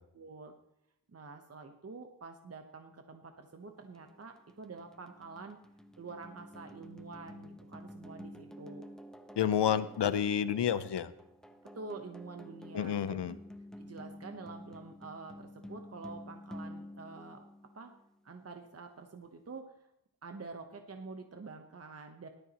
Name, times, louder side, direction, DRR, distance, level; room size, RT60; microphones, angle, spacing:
voice 1, 0.1-0.5 1.1-5.6 6.0-8.9 11.7-13.3 13.8-17.4 17.7-17.9 18.2-19.7 20.2-22.3, right 4 dB, 35° right, 5 dB, 1.0 m, -47 dB
sound 1, 4.0-18.1, equal, ahead, 0.9 m, -50 dB
voice 2, 9.4-11.1 12.7-13.3, left 9 dB, 85° left, 14 dB, 0.7 m, -29 dB
18.0 x 12.5 x 3.0 m, 0.81 s
wide cardioid pair, 90°, 40 cm